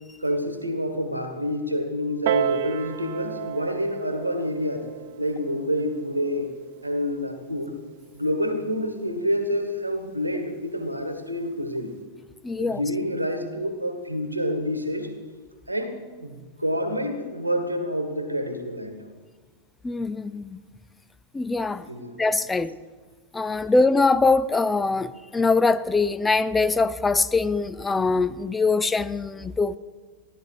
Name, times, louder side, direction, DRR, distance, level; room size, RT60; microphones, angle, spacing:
voice 1, 0.2-4.9 5.2-6.5 6.8-7.7 8.1-11.9 12.6-15.1 15.7-19.1 21.6-22.2, equal, 85° right, 1.5 m, -28 dB
Piano, 2.3-7.4 8.3-8.4, right 10 dB, 55° right, 0.6 m, -32 dB
voice 2, 12.4-12.8 19.8-20.6 21.3-21.9 22.2-22.8 23.3-29.8, left 3 dB, 10° left, 0.4 m, -23 dB
15.0 x 11.5 x 4.9 m
figure-of-eight pair, 90°, 0 cm